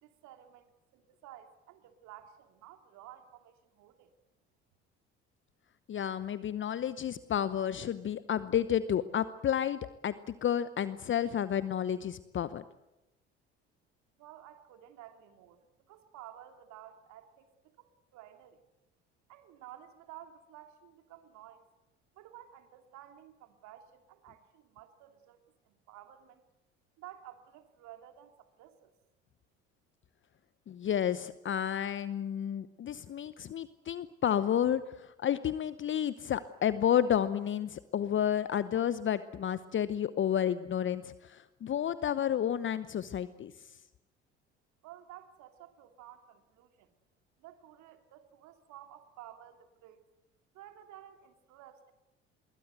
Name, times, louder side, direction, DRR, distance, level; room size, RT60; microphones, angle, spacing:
voice 1, 0.0-4.1 14.2-15.6 15.9-18.6 19.3-21.7 22.1-26.4 27.0-28.9 44.8-46.9 47.4-50.0 50.5-51.9, right 12 dB, 60° right, 7 dB, 2.7 m, -53 dB
voice 2, 5.9-12.6 30.7-43.5, left 9 dB, 35° left, 15 dB, 0.9 m, -31 dB
25.0 x 22.0 x 8.1 m, 0.97 s
figure-of-eight pair, 55°, 33 cm